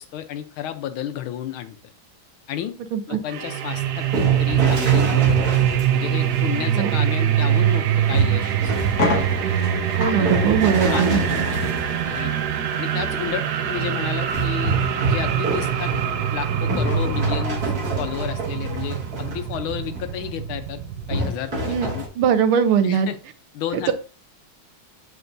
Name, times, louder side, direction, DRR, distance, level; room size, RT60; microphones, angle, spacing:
voice 1, 0.0-1.8 2.5-2.7 3.1-9.3 10.1-10.3 10.9-12.3 12.8-14.8 15.1-15.9 16.3-20.8 21.1-22.1 22.8-23.2 23.5-23.9, left 10 dB, 80° left, 10 dB, 1.5 m, -32 dB
sound 1, 3.3-21.2, right 10 dB, 70° right, 1.0 m, -23 dB
sound 2, 3.7-6.6 8.1-12.8 14.3-19.5 19.9-20.2 21.1-22.1, right 1 dB, 45° right, 2.1 m, -28 dB
sound 3, 7.9-8.0 8.5-8.6 8.9-17.5, left 3 dB, 50° left, 1.8 m, -33 dB
voice 2, 10.0-11.2 21.7-21.9 22.2-23.1 23.7-23.9, right 8 dB, 90° right, 9 dB, 1.6 m, -20 dB
8.1 x 4.7 x 2.6 m, 0.36 s
omnidirectional pair, 2.3 m